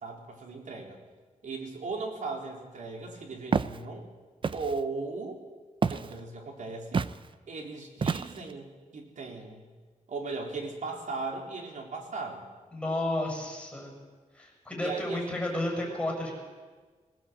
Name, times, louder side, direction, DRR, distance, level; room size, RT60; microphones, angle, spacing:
voice 1, 0.0-1.0 1.4-4.1 4.5-5.4 5.9-7.1 7.5-9.6 10.1-12.4 14.8-15.6, right 3 dB, 75° right, 1 dB, 3.8 m, -37 dB
Walk footsteps, 3.5-3.8 4.4-4.8 5.8-6.2 6.9-7.2 8.0-8.5, right 5 dB, 40° right, 0.6 m, -28 dB
voice 2, 12.7-13.9 14.3-16.3, left 1 dB, 10° left, -1 dB, 7.0 m, -32 dB
21.0 x 18.0 x 8.1 m, 1.4 s
wide cardioid pair, 135°, 13 cm